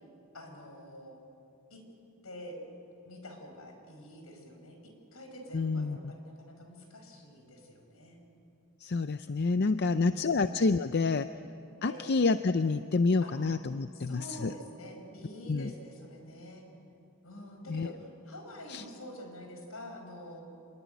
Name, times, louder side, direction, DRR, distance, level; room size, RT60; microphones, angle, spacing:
voice 1, 0.3-1.2 1.7-1.8 2.2-2.6 3.0-8.2 9.7-10.3 11.8-12.0 13.2-13.4 13.9-16.7 17.2-20.5, equal, 75° left, 4 dB, 5.6 m, -47 dB
voice 2, 5.5-6.0 8.8-11.3 11.8-14.5 15.5-15.7 17.7-17.9 18.7-18.8, left 3 dB, 50° left, 10 dB, 0.5 m, -28 dB
26.5 x 21.0 x 9.4 m, 2.7 s
head